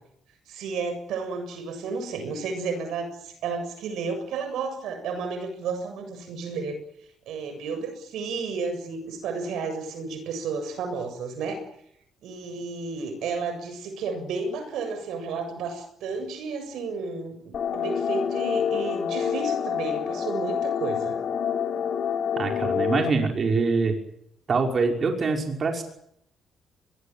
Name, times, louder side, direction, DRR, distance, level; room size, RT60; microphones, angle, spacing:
voice 1, 0.5-6.8 7.3-11.6 12.2-21.2, right 4 dB, 80° right, 8 dB, 7.4 m, -32 dB
sound 1, 17.5-23.1, left 8 dB, 60° left, 4.6 m, -27 dB
voice 2, 22.4-23.9 24.5-25.8, right 4 dB, 45° right, 2 dB, 5.6 m, -24 dB
23.5 x 21.0 x 9.2 m, 0.73 s
cardioid pair, 90°, 0 cm